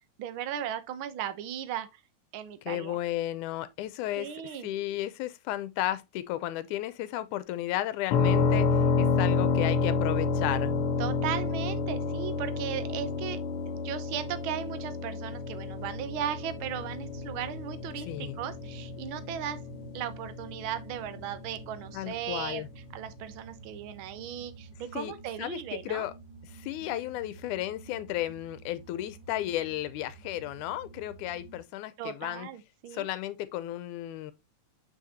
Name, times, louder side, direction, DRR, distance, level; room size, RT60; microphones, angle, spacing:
voice 1, 0.2-2.0 2.3-3.0 4.2-4.7 11.0-13.4 13.7-19.6 19.9-22.6 22.9-26.1 32.0-33.1, right 10 dB, 90° right, 1.1 m, -37 dB
voice 2, 2.6-10.9 18.1-18.4 21.9-22.7 24.9-25.1 25.4-26.1 26.4-32.5 32.9-34.3, left 14 dB, 85° left, 2.1 m, -34 dB
sound 1, 8.1-21.8, left 4 dB, 65° left, 1.4 m, -30 dB
sound 2, 15.7-31.6, right 4 dB, 50° right, 2.3 m, -50 dB
7.2 x 6.5 x 2.8 m
omnidirectional pair, 3.5 m